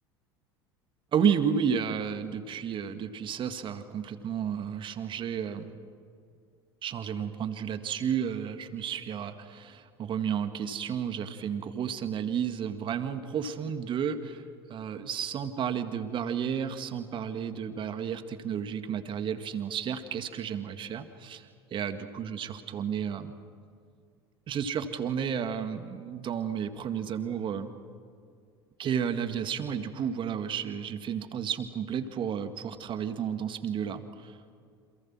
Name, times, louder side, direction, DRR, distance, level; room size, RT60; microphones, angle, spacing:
voice 1, 1.1-5.7 6.8-14.4 14.7-23.3 24.5-27.7 28.8-34.4, right 8 dB, 40° right, 9 dB, 1.9 m, -32 dB
30.0 x 27.5 x 6.2 m, 2.2 s
figure-of-eight pair, 70°, 13 cm